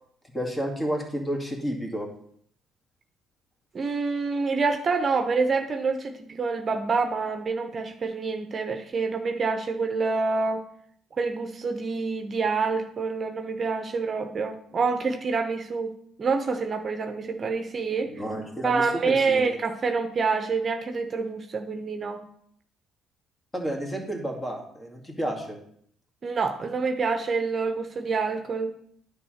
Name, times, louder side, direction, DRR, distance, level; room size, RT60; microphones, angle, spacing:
voice 1, 0.3-2.1 18.0-19.5 23.5-25.6, equal, 20° left, 1 dB, 2.3 m, -31 dB
voice 2, 3.7-10.6 11.2-15.9 16.2-18.1 18.6-22.2 26.2-28.7, right 4 dB, 40° right, 6 dB, 0.8 m, -27 dB
9.6 x 3.6 x 6.5 m, 0.66 s
hypercardioid pair, 55°, 0 cm